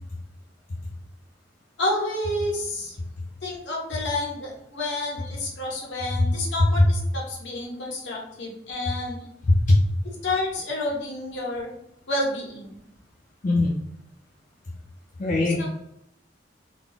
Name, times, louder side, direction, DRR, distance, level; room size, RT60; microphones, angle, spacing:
voice 1, 1.8-3.0 3.4-9.2 10.2-11.7 12.1-12.8 15.6-15.7, left 2 dB, 75° left, -2 dB, 1.1 m, -29 dB
voice 2, 9.4-9.8 13.4-13.8 15.2-15.7, left 2 dB, 45° left, -2 dB, 0.5 m, -20 dB
4.0 x 2.0 x 3.4 m, 0.76 s
head